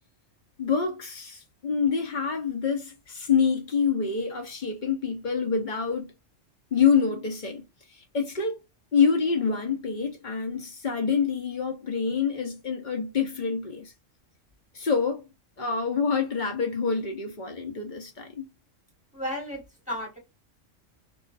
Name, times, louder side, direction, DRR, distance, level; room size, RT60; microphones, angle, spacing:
voice 1, 0.6-6.1 6.7-7.6 8.1-8.6 8.9-13.9 14.7-15.2 15.6-18.5, left 6 dB, 45° left, 0.7 m, -26 dB
voice 2, 19.1-19.6 19.9-20.2, left 1 dB, 5° right, 1.2 m, -32 dB
2.4 x 2.2 x 2.4 m
omnidirectional pair, 1.3 m